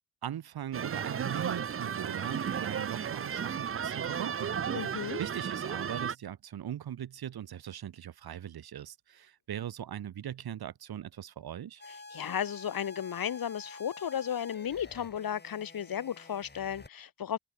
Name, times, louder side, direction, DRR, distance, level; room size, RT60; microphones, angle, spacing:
voice 1, 0.2-11.8, right 10 dB, 70° right, 3.5 m, -40 dB
sound 1, 0.7-6.1, right 7 dB, 35° right, 0.7 m, -34 dB
voice 2, 4.7-5.2 12.1-17.4, left 9 dB, 60° left, 2.1 m, -34 dB
sound 2, 11.8-16.9, left 3 dB, 25° left, 6.6 m, -49 dB
supercardioid pair, 45°, 39 cm